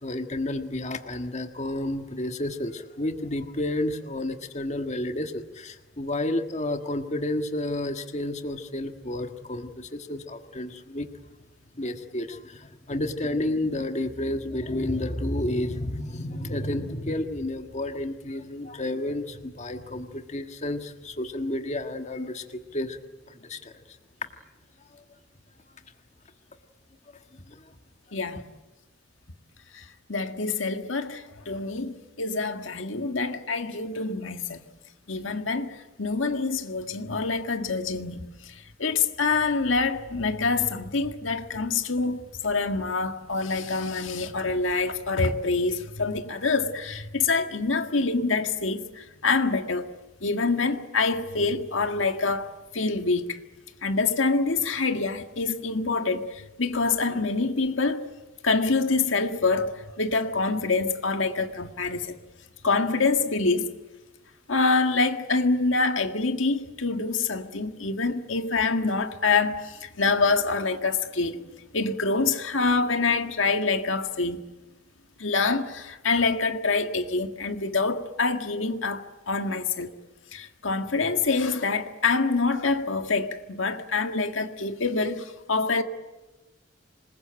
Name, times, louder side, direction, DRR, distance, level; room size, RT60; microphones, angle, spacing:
voice 1, 0.0-11.1 11.8-23.0 23.3-24.0 24.9-25.0 27.1-27.2 27.5-27.7, left 1 dB, 35° left, 1.6 m, -31 dB
voice 2, 28.1-28.4 29.7-29.8 30.1-34.6 35.1-49.9 50.2-53.4 53.8-58.1 58.4-62.2 62.6-63.7 64.5-71.5 71.7-74.4 75.2-79.9 80.3-85.8, left 4 dB, 85° left, 1.8 m, -26 dB
26.5 x 21.0 x 9.0 m
head